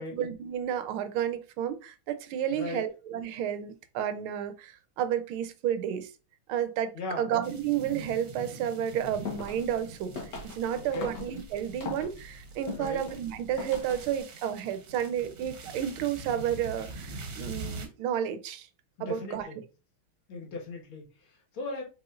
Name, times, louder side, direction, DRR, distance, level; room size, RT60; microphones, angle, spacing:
voice 1, 0.0-6.1 6.5-6.9 7.2-10.1 10.5-18.7 19.0-19.5, right 9 dB, 90° right, 10 dB, 1.5 m, -31 dB
voice 2, 2.5-2.8 6.9-7.3 10.7-11.1 11.7-11.8 12.7-13.0 19.1-19.6 20.3-21.8, left 2 dB, 80° left, -1 dB, 2.4 m, -38 dB
sound 1, 7.4-17.9, right 3 dB, 65° right, 1.6 m, -44 dB
sound 2, 9.0-14.2, left 4 dB, 60° left, 1.8 m, -42 dB
4.9 x 4.5 x 2.4 m, 0.32 s
omnidirectional pair, 2.2 m